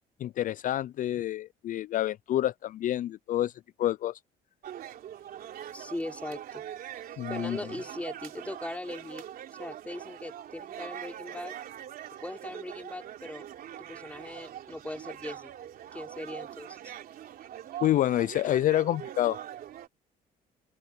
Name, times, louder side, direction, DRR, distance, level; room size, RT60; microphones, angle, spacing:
voice 1, 0.2-3.5 3.8-4.2 7.2-7.6 17.8-19.4, left 13 dB, 50° left, 0.4 m, -28 dB
sound 1, 4.6-19.9, right 11 dB, 60° right, 3.2 m, -43 dB
voice 2, 5.7-6.7 7.3-9.3 9.6-11.5 12.2-13.4 13.8-15.5 15.9-16.9, left 1 dB, 10° left, 5.5 m, -39 dB
open air
cardioid pair, 110°, 17 cm